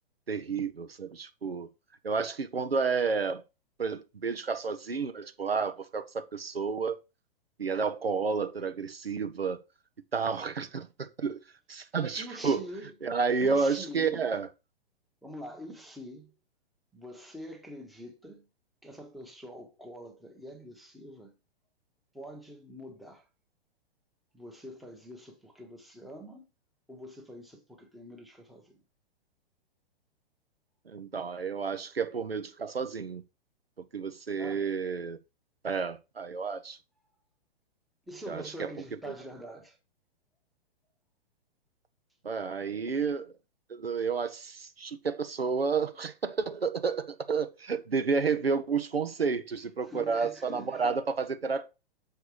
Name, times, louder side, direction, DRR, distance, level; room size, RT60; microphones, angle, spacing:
voice 1, 0.3-1.7 2.0-3.4 3.8-7.0 7.6-9.6 10.1-11.4 11.7-12.6 13.0-14.5 30.9-33.2 33.9-35.2 35.6-36.8 38.3-38.7 39.1-39.2 42.2-43.3 43.7-51.7, right 5 dB, 80° right, 0.8 m, -31 dB
voice 2, 12.1-13.0 13.4-14.2 15.2-16.3 16.9-18.5 18.8-21.3 22.1-23.2 24.3-26.5 26.9-28.8 34.3-34.7 38.1-39.8 49.8-50.9, equal, ahead, 1.0 m, -45 dB
6.7 x 4.6 x 4.8 m
figure-of-eight pair, 115°, 29 cm